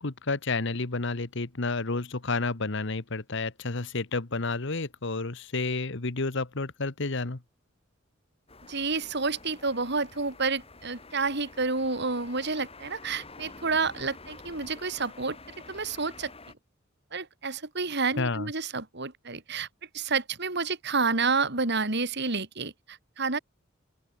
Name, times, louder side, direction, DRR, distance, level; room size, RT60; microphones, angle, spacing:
voice 1, 0.0-7.4 18.2-18.5, left 3 dB, 65° left, 1.4 m, -30 dB
sound 1, 8.5-16.5, left 3 dB, 30° left, 5.7 m, -49 dB
voice 2, 8.7-15.4 15.7-16.3 17.1-19.7 19.9-23.4, right 4 dB, 60° right, 3.9 m, -29 dB
open air
head